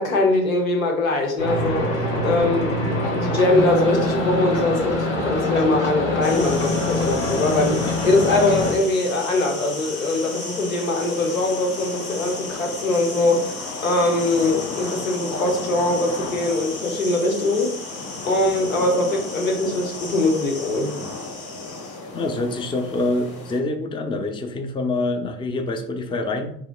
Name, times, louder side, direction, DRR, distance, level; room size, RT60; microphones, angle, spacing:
voice 1, 0.0-1.9 2.2-2.7 3.0-17.8 18.2-21.0, left 2 dB, 90° left, 2 dB, 0.8 m, -22 dB
sound 1, 1.4-8.7, left 1 dB, 65° left, 1.3 m, -24 dB
sound 2, 6.2-23.6, left 3 dB, 40° left, 1.2 m, -33 dB
voice 2, 22.1-26.6, left 2 dB, 15° left, 6 dB, 0.4 m, -26 dB
4.7 x 2.9 x 2.2 m, 0.64 s
figure-of-eight pair, 65°, 40 cm